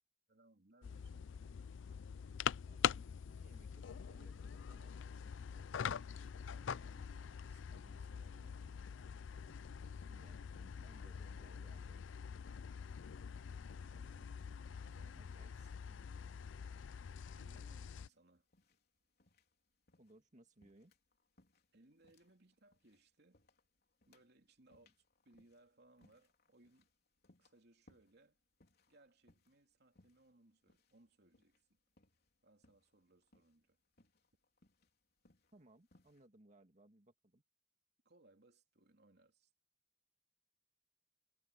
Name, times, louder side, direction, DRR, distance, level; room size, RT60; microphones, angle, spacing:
voice 1, 0.3-1.3 6.1-8.7 13.8-14.3 14.8-15.8 17.3-18.5 21.7-23.4 24.1-24.9 25.2-26.9 27.4-28.4 28.9-31.8 32.4-33.8 38.0-39.5, right 2 dB, 60° right, 3.0 m, -68 dB
sound 1, 0.8-18.1, left 7 dB, 75° left, 0.4 m, -44 dB
voice 2, 2.6-5.3 10.1-12.0 15.2-16.1 20.0-20.9 24.8-24.9 35.5-37.4, right 1 dB, 40° right, 2.0 m, -66 dB
sound 2, 17.3-36.3, left 2 dB, 55° left, 4.0 m, -74 dB
head